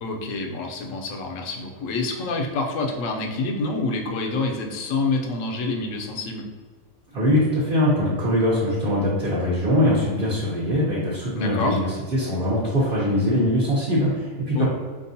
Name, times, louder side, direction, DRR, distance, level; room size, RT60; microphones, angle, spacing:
voice 1, 0.0-6.5 11.4-11.8 14.5-14.7, left 3 dB, 70° left, 2 dB, 1.0 m, -27 dB
voice 2, 7.1-11.8 12.1-14.7, left 1 dB, 45° right, -6 dB, 1.0 m, -22 dB
4.6 x 3.7 x 2.7 m, 1.5 s
omnidirectional pair, 1.4 m